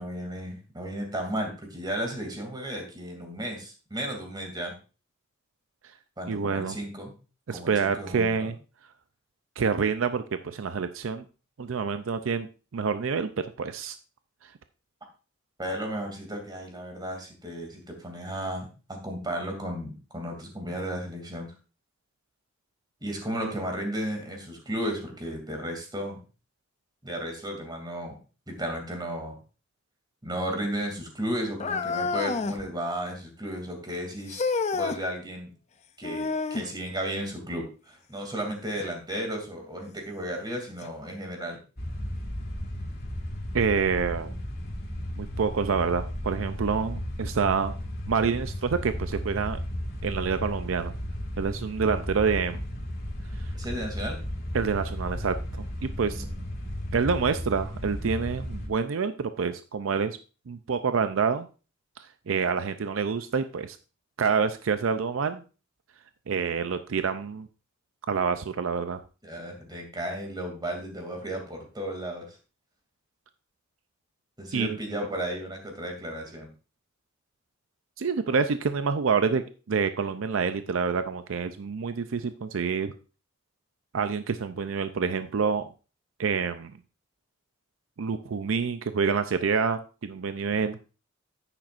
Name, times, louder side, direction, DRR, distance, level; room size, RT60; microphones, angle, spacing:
voice 1, 0.0-4.7 6.2-7.1 7.5-8.5 15.6-21.5 23.0-26.2 27.0-28.1 28.5-29.4 30.2-34.4 34.7-35.5 36.0-41.6 53.5-54.2 56.1-56.4 69.2-72.4 74.4-76.5, equal, 20° right, 3 dB, 2.6 m, -34 dB
voice 2, 6.3-6.8 7.5-8.5 9.6-11.2 11.6-12.5 12.7-13.3 13.6-14.0 14.4-14.5 43.5-44.3 45.2-47.7 48.1-49.6 50.0-50.9 51.4-52.6 54.5-55.6 56.0-56.2 56.9-60.2 60.5-61.5 62.0-63.8 64.2-65.4 66.3-67.5 68.1-69.0 74.5-74.7 78.0-82.9 83.9-85.7 86.2-86.7 88.0-90.8, right 5 dB, 70° right, 10 dB, 0.5 m, -27 dB
sound 1, 31.6-32.6 34.3-35.0 36.0-36.7 38.8-38.9 39.7-39.8 40.8-40.9, left 4 dB, 35° left, 0.6 m, -29 dB
sound 2, 41.8-58.7, equal, 50° left, 2.0 m, -34 dB
10.0 x 9.0 x 2.5 m, 0.34 s
head